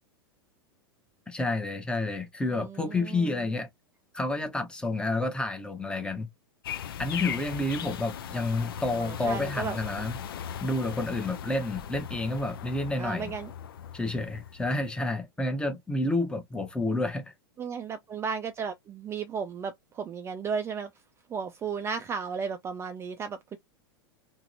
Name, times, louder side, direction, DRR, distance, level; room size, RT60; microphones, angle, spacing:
voice 1, 1.3-3.7 4.1-6.3 7.0-10.2 10.6-13.3 13.9-17.3, left 2 dB, 5° left, 0.8 m, -30 dB
voice 2, 2.5-3.5 8.9-9.8 13.0-13.5 17.6-20.9 21.3-23.6, right 6 dB, 20° right, 0.4 m, -34 dB
sound 1, 6.6-14.9, left 9 dB, 70° left, 0.5 m, -38 dB
2.9 x 2.8 x 2.5 m
hypercardioid pair, 100°, 12 cm